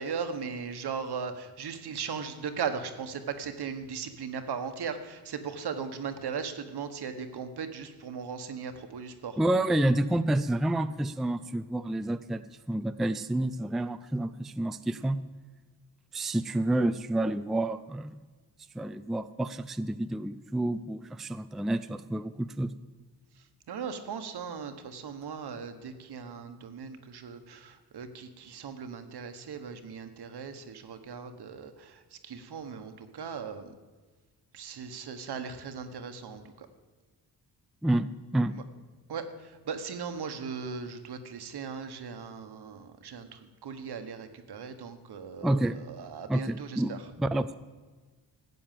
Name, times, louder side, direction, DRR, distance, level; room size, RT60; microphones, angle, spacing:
voice 1, 0.0-9.4 23.7-33.7 34.5-36.7 39.1-47.0, right 6 dB, 70° right, 8 dB, 1.4 m, -38 dB
voice 2, 9.4-15.2 16.1-18.2 18.7-22.7 37.8-38.5 45.4-45.8 46.3-47.6, right 1 dB, ahead, 10 dB, 0.4 m, -29 dB
13.5 x 8.6 x 7.6 m, 1.3 s
cardioid pair, 100°, 40 cm